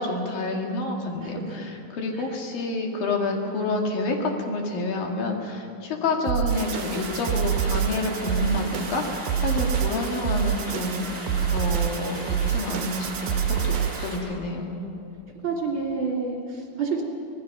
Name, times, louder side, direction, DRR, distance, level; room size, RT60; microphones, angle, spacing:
voice 1, 0.0-14.7, left 2 dB, 75° left, 1 dB, 3.8 m, -29 dB
voice 2, 1.2-1.7 2.1-2.3 14.2-14.9 15.4-17.0, right 4 dB, 35° right, -2 dB, 3.5 m, -30 dB
sound 1, 6.3-14.2, right 9 dB, 75° right, 2.2 m, -27 dB
sound 2, 6.5-14.2, right 1 dB, 20° right, 4.6 m, -37 dB
25.5 x 20.0 x 6.0 m, 2.7 s
omnidirectional pair, 4.2 m